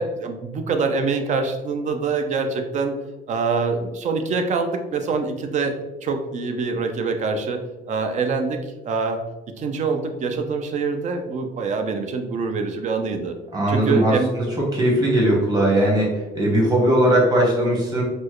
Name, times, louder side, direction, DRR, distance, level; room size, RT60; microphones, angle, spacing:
voice 1, 0.0-2.9 3.3-9.2 9.6-13.4 13.7-14.3, right 4 dB, 45° right, 6 dB, 0.5 m, -25 dB
voice 2, 13.5-14.5 14.7-18.0, right 1 dB, 25° right, -3 dB, 1.2 m, -19 dB
4.2 x 2.2 x 3.0 m, 1.1 s
cardioid pair, 110°, 17 cm